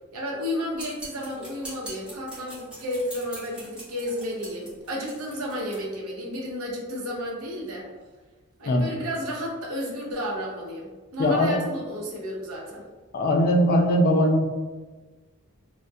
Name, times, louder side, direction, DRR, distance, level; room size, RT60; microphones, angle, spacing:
voice 1, 0.1-7.9 8.6-12.8, equal, 75° right, -2 dB, 0.6 m, -32 dB
sound 1, 0.8-5.8, equal, 5° right, 0.8 m, -42 dB
voice 2, 11.2-11.5 13.1-14.5, equal, 45° left, 1 dB, 0.3 m, -20 dB
2.3 x 2.1 x 2.5 m, 1.3 s
head